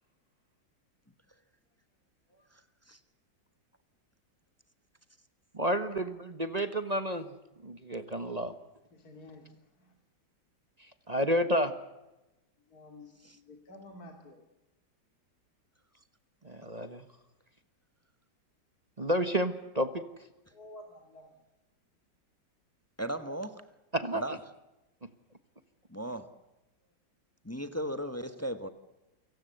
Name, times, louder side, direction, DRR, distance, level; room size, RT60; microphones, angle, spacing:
voice 1, 5.5-7.3 7.6-8.5 10.8-11.7 16.4-17.1 19.0-19.9 23.9-24.2, equal, 25° right, 1.3 m, -30 dB
voice 2, 8.9-9.9 12.7-14.4 20.5-21.3, left 1 dB, 55° left, 3.3 m, -51 dB
voice 3, 23.0-23.6 24.1-24.4 25.9-26.3 27.4-28.7, right 1 dB, 10° left, 1.2 m, -36 dB
29.5 x 18.0 x 8.0 m
omnidirectional pair, 2.0 m